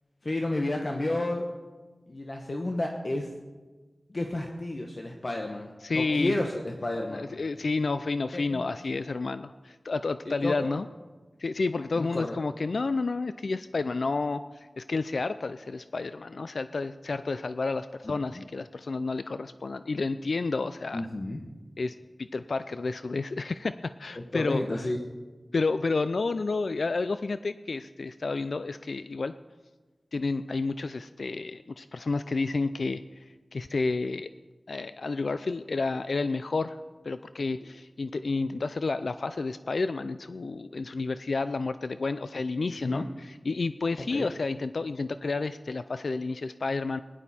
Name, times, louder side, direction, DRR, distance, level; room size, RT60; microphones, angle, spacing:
voice 1, 0.2-1.5 2.1-3.3 4.1-7.2 8.3-8.6 8.9-9.0 10.3-10.7 12.0-12.4 18.0-18.1 20.9-21.4 24.2-25.0 37.6-37.7 42.8-43.1 44.0-44.3, left 1 dB, 50° left, 2 dB, 1.1 m, -31 dB
voice 2, 5.8-6.4 7.1-10.9 11.4-21.1 21.8-23.7 24.0-24.9 25.5-29.3 30.1-33.2 33.5-34.3 34.7-36.8 37.0-47.0, left 3 dB, 80° left, 12 dB, 0.3 m, -30 dB
18.0 x 11.0 x 4.2 m, 1.3 s
wide cardioid pair, 70°, 0 cm